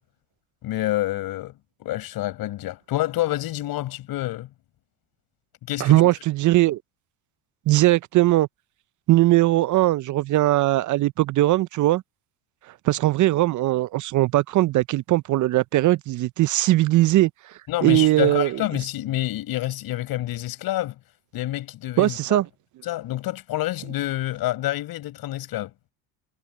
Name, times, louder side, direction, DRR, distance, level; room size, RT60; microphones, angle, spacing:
voice 1, 0.6-1.5 1.8-4.5 5.7-6.0 17.7-20.9 21.3-22.4 22.8-25.7, left 15 dB, 60° left, 5.0 m, -28 dB
voice 2, 5.8-6.8 7.7-8.5 9.1-12.0 12.8-17.3 17.8-18.6 22.0-22.5, right 16 dB, 50° right, 0.6 m, -19 dB
supercardioid pair, 85°, 39 cm